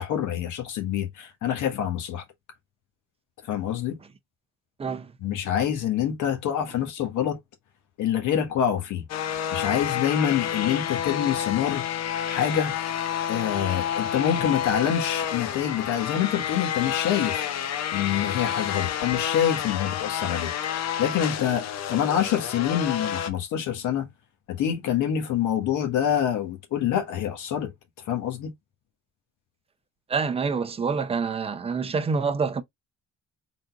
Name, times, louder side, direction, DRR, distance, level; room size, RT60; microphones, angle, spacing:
voice 1, 0.0-2.2 3.4-4.0 5.2-7.4 8.0-9.0 9.5-11.9 12.3-12.8 13.3-17.4 17.9-24.1 24.5-27.7 28.0-28.5, left 9 dB, 80° left, 1.5 m, -26 dB
voice 2, 4.8-5.1 30.1-32.6, right 5 dB, 20° right, 0.6 m, -26 dB
sound 1, 9.1-23.3, left 9 dB, 60° left, 0.8 m, -29 dB
4.1 x 3.9 x 2.4 m
cardioid pair, 145°, 30 cm